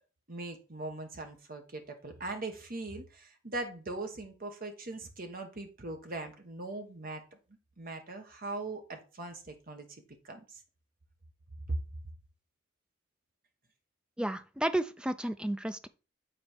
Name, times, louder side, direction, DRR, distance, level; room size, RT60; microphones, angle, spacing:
voice 1, 0.3-7.2 7.8-10.4 11.7-11.8, right 2 dB, 50° right, 1.4 m, -40 dB
voice 2, 14.2-15.9, right 1 dB, 5° right, 0.4 m, -32 dB
7.8 x 4.2 x 4.5 m
head